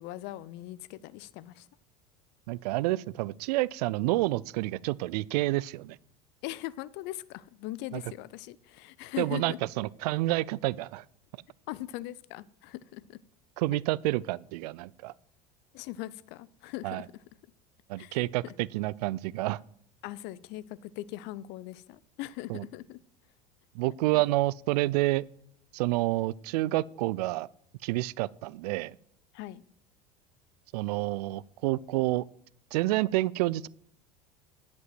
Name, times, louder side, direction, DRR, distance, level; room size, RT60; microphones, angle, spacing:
voice 1, 0.0-1.7 6.4-9.6 11.7-13.2 15.7-17.1 18.0-18.5 20.0-23.0 24.1-24.2 29.3-29.6, left 16 dB, 55° left, 0.6 m, -40 dB
voice 2, 2.5-6.0 7.9-8.0 9.2-11.0 13.6-15.1 16.8-17.0 17.9-19.6 22.5-22.6 23.7-25.3 25.7-27.5 27.8-29.0 30.7-32.2 32.7-33.7, right 18 dB, 70° right, 0.4 m, -29 dB
11.0 x 5.3 x 7.8 m
hypercardioid pair, 80°, 21 cm